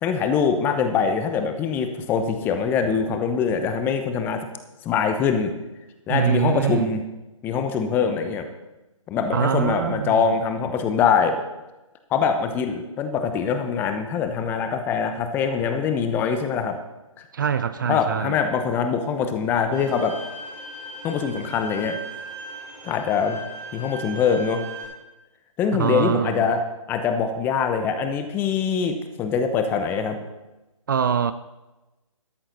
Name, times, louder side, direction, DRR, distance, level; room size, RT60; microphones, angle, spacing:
voice 1, 0.0-4.5 4.8-5.6 6.1-7.0 7.4-8.5 9.1-11.4 12.1-16.8 17.9-20.2 21.0-22.0 22.8-23.4 23.7-24.6 25.6-30.2, left 6 dB, 10° left, 8 dB, 0.7 m, -23 dB
voice 2, 6.1-6.9 9.3-10.3 17.3-18.4 25.8-26.5 30.9-31.3, right 8 dB, 35° right, 13 dB, 0.4 m, -24 dB
Bowed string instrument, 19.7-24.8, right 1 dB, 10° right, 3.5 m, -38 dB
13.0 x 11.5 x 4.0 m, 1.0 s
figure-of-eight pair, 150°, 17 cm